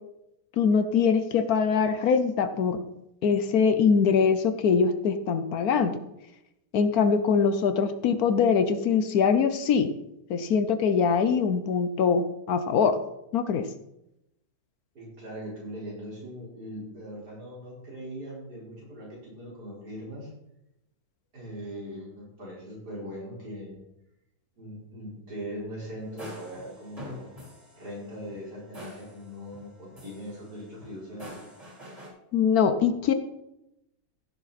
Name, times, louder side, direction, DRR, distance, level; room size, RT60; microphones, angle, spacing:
voice 1, 0.6-2.8 3.2-6.0 6.7-9.9 10.3-13.0 13.3-13.7 32.3-33.1, left 6 dB, 65° left, 10 dB, 1.2 m, -23 dB
voice 2, 14.9-20.3 21.3-23.8 24.6-27.3 27.8-31.4, equal, 70° right, -5 dB, 5.0 m, -40 dB
sound 1, 26.0-29.7 29.9-32.1, equal, 20° right, 3.6 m, -45 dB
15.5 x 7.0 x 4.2 m, 0.86 s
omnidirectional pair, 1.8 m